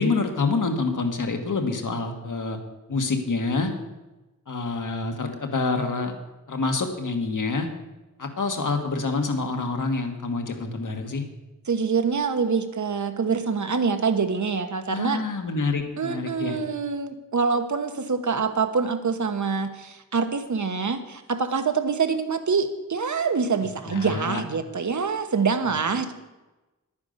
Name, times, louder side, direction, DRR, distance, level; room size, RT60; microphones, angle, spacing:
voice 1, 0.0-2.6 2.9-3.7 4.5-6.1 6.5-7.7 8.2-11.2 14.9-16.6 23.9-24.4, left 3 dB, 70° left, 4 dB, 1.8 m, -27 dB
voice 2, 11.7-15.2 16.0-26.1, right 5 dB, 65° right, 8 dB, 1.2 m, -25 dB
11.0 x 9.6 x 6.6 m, 1.1 s
wide cardioid pair, 100°, 32 cm